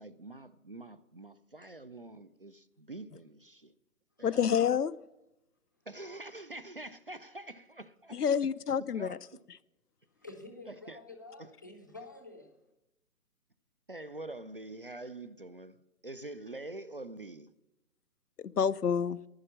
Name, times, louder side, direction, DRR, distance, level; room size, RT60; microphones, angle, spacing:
voice 1, 0.0-3.7 4.2-4.5 5.9-8.2 8.8-9.2 10.7-11.0 11.4-11.5 13.9-15.8 16.0-17.5, right 2 dB, 40° right, 0.4 m, -45 dB
voice 2, 4.2-4.9 8.1-9.1 18.4-19.2, left 7 dB, 90° left, 0.6 m, -28 dB
voice 3, 10.2-12.5, left 2 dB, 15° left, 0.5 m, -49 dB
11.0 x 9.9 x 7.3 m
figure-of-eight pair, 145°, 45 cm